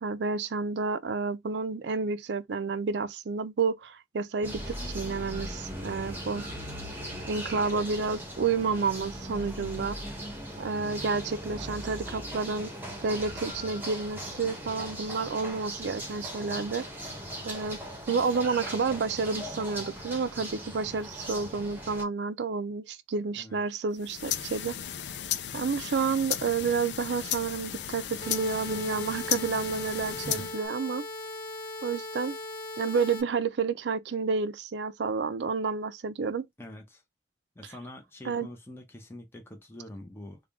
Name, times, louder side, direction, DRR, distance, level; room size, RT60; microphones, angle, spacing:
voice 1, 0.0-6.5 7.3-10.0 10.6-12.7 13.0-16.9 17.4-17.8 18.1-24.8 25.5-31.0 31.8-32.4 32.8-36.5 38.2-38.5, right 4 dB, 80° right, 0.4 m, -30 dB
sound 1, 4.4-22.0, equal, 10° right, 0.9 m, -39 dB
voice 2, 9.6-9.9 23.3-23.6 30.2-30.4 36.6-37.0 37.6-40.4, left 1 dB, 15° left, 0.8 m, -44 dB
sound 2, 23.9-30.7, left 10 dB, 80° left, 0.5 m, -35 dB
sound 3, 28.2-33.2, left 2 dB, 50° left, 1.4 m, -39 dB
3.6 x 2.3 x 3.4 m
head